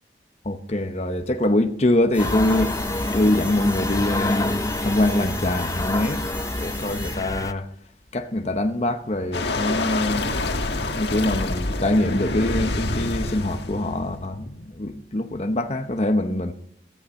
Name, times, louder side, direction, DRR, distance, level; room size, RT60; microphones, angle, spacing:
voice 1, 0.4-2.8 3.1-6.2 6.5-7.7 8.1-10.3 10.7-16.5, left 1 dB, 35° left, 0.9 m, -24 dB
sound 1, 2.1-7.1, equal, 10° right, 4.4 m, -38 dB
sound 2, 2.2-7.5, left 2 dB, 20° left, 0.5 m, -27 dB
sound 3, 9.3-14.6, left 2 dB, 70° left, 1.6 m, -27 dB
16.0 x 14.0 x 4.3 m
head